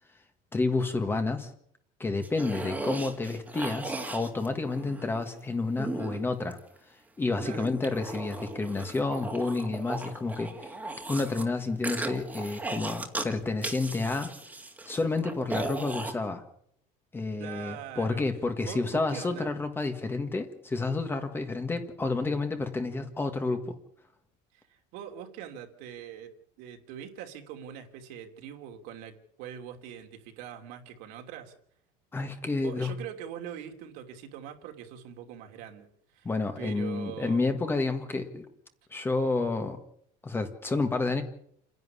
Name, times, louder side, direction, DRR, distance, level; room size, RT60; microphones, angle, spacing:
voice 1, 0.5-1.5 2.0-6.6 7.2-10.7 11.1-14.3 14.8-16.4 17.1-23.8 32.1-32.9 36.2-38.4 38.9-39.8 40.2-41.2, left 3 dB, 10° left, 7 dB, 1.7 m, -30 dB
sound 1, 2.2-5.2 5.8-6.8 7.3-11.4 11.8-13.3 13.6-16.1, right 2 dB, 10° right, 2.1 m, -37 dB
voice 2, 17.4-18.2 18.6-19.5 24.5-31.5 32.5-35.9 36.1-36.3 36.6-37.5, right 10 dB, 65° right, 4 dB, 3.1 m, -43 dB
28.5 x 11.0 x 9.8 m, 0.69 s
cardioid pair, 165°, 18 cm